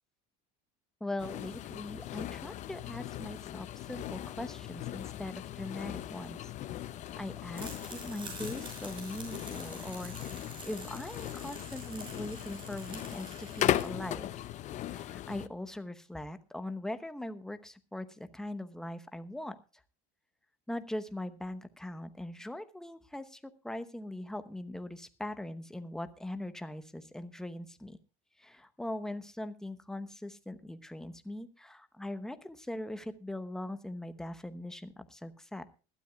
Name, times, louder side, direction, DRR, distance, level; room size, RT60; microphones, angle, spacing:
voice 1, 1.0-6.5 7.2-14.4 14.9-19.6 20.7-28.0 28.4-35.7, left 1 dB, 5° left, 10 dB, 0.9 m, -41 dB
sound 1, 1.2-15.5, left 13 dB, 40° left, 0.7 m, -38 dB
sound 2, 7.5-13.8, right 3 dB, 25° right, 5.8 m, -48 dB
20.5 x 13.0 x 2.3 m, 0.33 s
cardioid pair, 135°, 18 cm